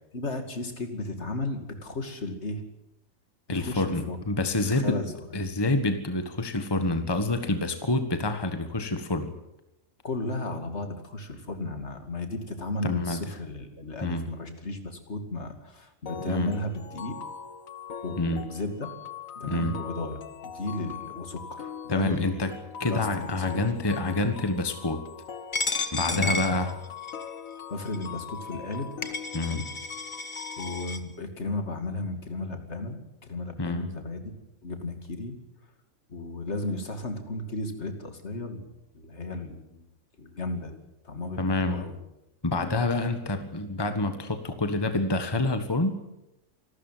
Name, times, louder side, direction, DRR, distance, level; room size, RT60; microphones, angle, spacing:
voice 1, 0.1-2.6 3.6-4.2 4.7-5.5 10.0-17.2 18.0-18.9 19.4-22.5 22.9-23.6 26.1-26.6 27.7-28.9 29.4-29.7 30.6-35.4 36.1-38.7 38.9-39.8 40.2-40.8 41.0-42.0, left 2 dB, 55° left, 6 dB, 2.8 m, -34 dB
voice 2, 3.5-5.0 5.3-9.3 12.8-13.2 14.0-14.2 16.3-16.5 18.2-18.4 19.5-19.7 21.9-22.5 22.8-25.0 25.9-26.7 29.3-29.6 33.6-33.9 41.4-41.8 42.4-45.9, left 2 dB, 20° left, 8 dB, 1.5 m, -27 dB
sound 1, 16.1-30.8, left 7 dB, 75° left, 1.7 m, -42 dB
Coin (dropping), 25.5-27.3 27.9-28.1 28.7-28.8 29.0-31.0, left 3 dB, 35° left, 1.5 m, -32 dB
26.0 x 13.0 x 9.2 m, 0.91 s
omnidirectional pair, 1.4 m